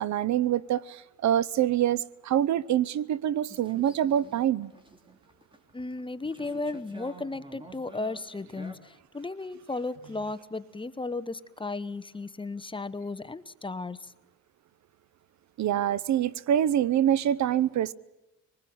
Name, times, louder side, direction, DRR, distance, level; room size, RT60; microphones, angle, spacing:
voice 1, 0.0-4.7 15.6-17.9, right 10 dB, 65° right, 0.7 m, -25 dB
sound 1, 3.5-8.7, right 2 dB, 15° right, 3.5 m, -49 dB
voice 2, 5.7-14.1, left 3 dB, 15° left, 1.0 m, -35 dB
24.5 x 20.5 x 8.6 m
cardioid pair, 90°, 30 cm